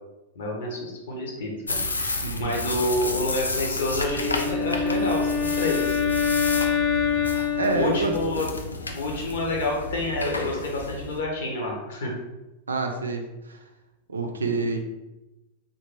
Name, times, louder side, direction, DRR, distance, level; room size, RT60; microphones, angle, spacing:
voice 1, 0.3-6.0 7.7-8.4 8.9-12.1, left 2 dB, 60° left, -1 dB, 0.9 m, -28 dB
sound 1, 1.7-11.2, left 2 dB, 80° left, 0.3 m, -32 dB
voice 2, 2.1-2.7 7.6-8.1 12.7-13.6 14.1-14.8, right 3 dB, 75° right, 3 dB, 0.4 m, -27 dB
Wind instrument woodwind instrument, 4.0-8.5, left 6 dB, 30° left, 0.8 m, -26 dB
3.2 x 2.6 x 3.0 m, 1.0 s
figure-of-eight pair, 90°, 0 cm